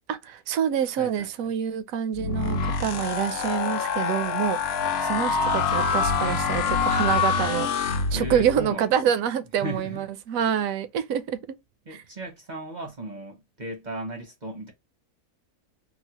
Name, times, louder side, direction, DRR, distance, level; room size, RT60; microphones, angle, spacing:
voice 1, 0.1-4.6 5.0-7.7 8.1-11.6, right 9 dB, 70° right, 0.9 m, -26 dB
voice 2, 1.0-1.6 8.1-9.0 9.6-10.1 11.9-14.7, right 1 dB, 45° right, 0.6 m, -36 dB
sound 1, 2.1-8.6, left 5 dB, 65° left, 0.6 m, -25 dB
4.0 x 2.0 x 2.8 m
omnidirectional pair, 1.7 m